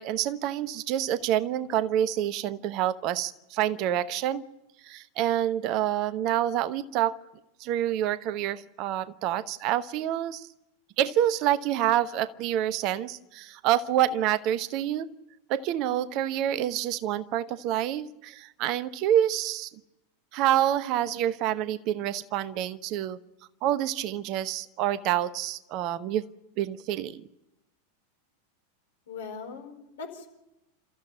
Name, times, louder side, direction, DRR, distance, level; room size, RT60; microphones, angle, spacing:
voice 1, 0.0-4.4 4.8-7.1 7.6-10.5 11.0-15.1 15.5-19.7 20.3-23.2 23.6-26.2 26.6-27.2, right 11 dB, 40° right, 15 dB, 1.0 m, -27 dB
voice 2, 29.1-30.3, left 5 dB, 60° left, 5 dB, 4.8 m, -40 dB
29.5 x 14.5 x 9.5 m, 0.95 s
figure-of-eight pair, 90°, 0 cm